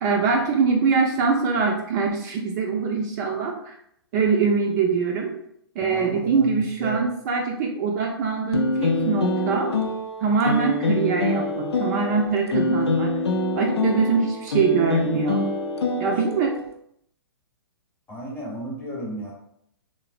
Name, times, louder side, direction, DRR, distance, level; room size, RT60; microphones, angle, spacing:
voice 1, 0.0-3.7 4.1-5.3 5.8-9.7 10.2-13.1 13.6-15.4 16.0-16.5, right 5 dB, 40° right, 1 dB, 0.4 m, -23 dB
voice 2, 5.8-7.0 18.1-19.3, right 1 dB, 15° left, -3 dB, 0.8 m, -33 dB
sound 1, 8.5-16.6, left 3 dB, 85° left, 0.5 m, -25 dB
3.1 x 2.0 x 2.5 m, 0.72 s
hypercardioid pair, 125°, 13 cm